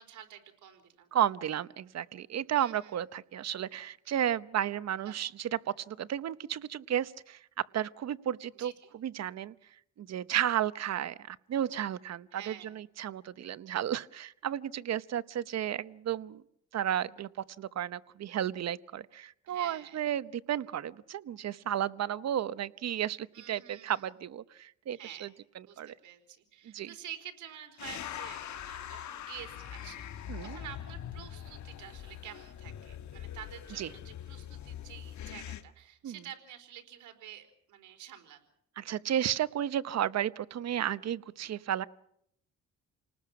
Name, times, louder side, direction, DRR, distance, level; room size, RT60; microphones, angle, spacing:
voice 1, 0.0-1.1 2.5-2.9 5.1-5.2 8.5-8.9 12.3-12.7 19.5-20.0 23.3-24.0 24.9-25.3 25.6-38.4, right 10 dB, 75° right, 5 dB, 4.2 m, -49 dB
voice 2, 1.1-7.4 7.7-9.5 10.0-16.4 16.7-17.3 17.6-25.3 25.5-25.9 26.6-26.9 30.3-30.6 33.8-33.9 36.0-36.2 38.8-41.8, right 10 dB, 60° right, 16 dB, 0.9 m, -33 dB
sound 1, 27.8-35.6, left 10 dB, 70° left, 1.6 m, -43 dB
29.5 x 19.5 x 6.0 m, 0.72 s
cardioid pair, 90°, 30 cm